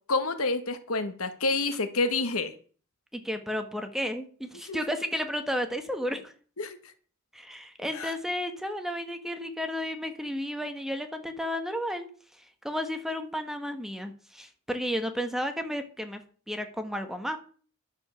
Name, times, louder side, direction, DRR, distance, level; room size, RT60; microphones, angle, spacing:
voice 1, 0.1-2.5 4.5-4.8 6.6-6.9 7.9-8.1, left 3 dB, 70° left, 10 dB, 1.5 m, -29 dB
voice 2, 3.1-6.3 7.3-12.1 12.6-16.2 16.5-17.4, equal, ahead, 6 dB, 1.5 m, -32 dB
11.5 x 7.4 x 7.1 m, 0.42 s
head